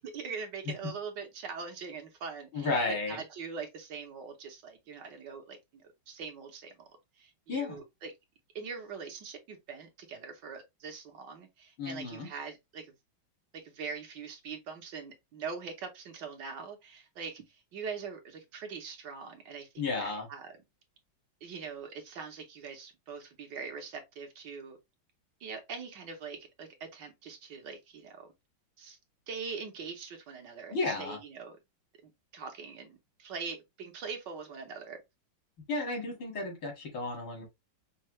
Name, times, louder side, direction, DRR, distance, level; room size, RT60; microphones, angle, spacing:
voice 1, 0.0-6.9 7.2-8.1 8.5-12.9 13.5-20.6 21.4-24.8 25.4-28.3 28.8-29.0 29.3-31.6 32.0-35.0, right 5 dB, 65° right, 1.4 m, -42 dB
voice 2, 2.5-3.2 7.5-7.8 11.8-12.3 19.8-20.3 30.7-31.2 35.7-37.4, left 3 dB, 80° left, 2.7 m, -33 dB
5.5 x 2.3 x 3.0 m
omnidirectional pair, 2.2 m